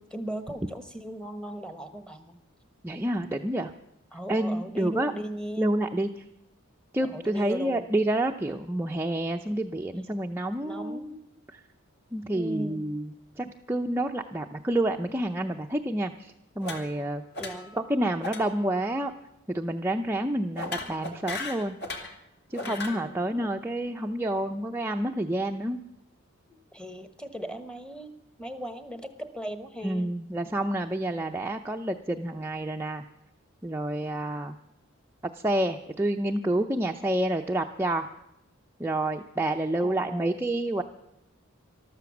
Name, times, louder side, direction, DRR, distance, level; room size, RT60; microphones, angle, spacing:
voice 1, 0.0-2.4 4.1-5.7 7.0-7.8 10.6-11.2 12.3-12.9 17.4-17.8 22.6-23.5 26.7-28.1 28.4-30.1 39.8-40.4, equal, 5° left, 9 dB, 1.2 m, -38 dB
voice 2, 2.8-3.7 4.3-5.1 5.6-6.2 6.9-11.2 11.5-11.6 12.1-13.1 13.4-17.2 17.8-19.1 19.5-21.8 22.5-25.8 29.8-33.0 33.6-34.5 35.4-38.1 38.8-40.8, right 1 dB, 10° right, 3 dB, 0.6 m, -28 dB
sound 1, 16.6-17.1 17.3-17.8 18.2-18.5 18.7-19.0 20.6-22.1 22.5-23.0, left 3 dB, 55° left, 2.3 m, -36 dB
14.0 x 12.5 x 7.1 m, 0.86 s
head